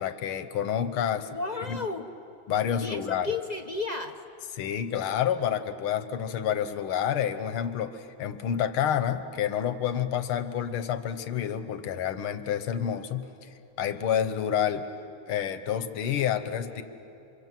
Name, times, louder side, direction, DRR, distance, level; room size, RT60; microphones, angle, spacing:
voice 1, 0.0-1.4 1.7-1.8 2.5-3.3 4.5-13.5 13.8-14.9 15.3-16.8, left 9 dB, 90° left, 10 dB, 1.9 m, -29 dB
voice 2, 1.3-2.1 2.8-4.2, left 3 dB, 50° left, 4 dB, 0.5 m, -33 dB
29.5 x 25.5 x 7.6 m, 2.8 s
omnidirectional pair, 2.3 m